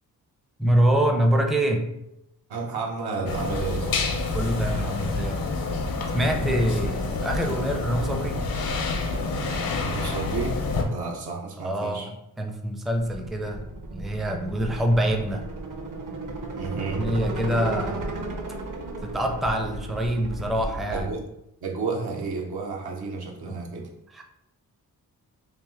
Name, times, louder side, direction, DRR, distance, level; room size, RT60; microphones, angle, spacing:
voice 1, 0.6-1.9 4.3-5.4 6.1-8.4 11.6-13.6 13.9-15.4 17.0-18.2 19.0-21.1 23.5-23.6 24.1-24.2, right 1 dB, ahead, 4 dB, 0.4 m, -25 dB
voice 2, 2.5-4.0 6.2-6.5 9.8-12.1 16.5-17.1 20.9-21.3 21.6-23.9, right 4 dB, 85° right, -1 dB, 0.9 m, -31 dB
sound 1, 3.3-10.8, left 3 dB, 65° left, 0.7 m, -28 dB
sound 2, 13.0-21.1, right 2 dB, 55° right, 0.7 m, -34 dB
3.4 x 2.6 x 3.5 m, 0.85 s
cardioid pair, 70°, 37 cm